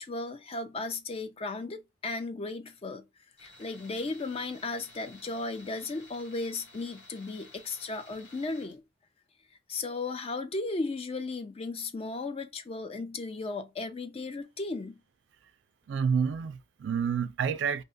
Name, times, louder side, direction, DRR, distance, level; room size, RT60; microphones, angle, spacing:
voice 1, 0.0-3.1 3.4-8.8 9.7-15.0, left 3 dB, 30° left, 0.4 m, -35 dB
Tools, 3.4-8.8, left 2 dB, 70° left, 1.3 m, -54 dB
voice 2, 15.9-17.8, right 6 dB, 70° right, 0.3 m, -29 dB
2.7 x 2.2 x 3.8 m
head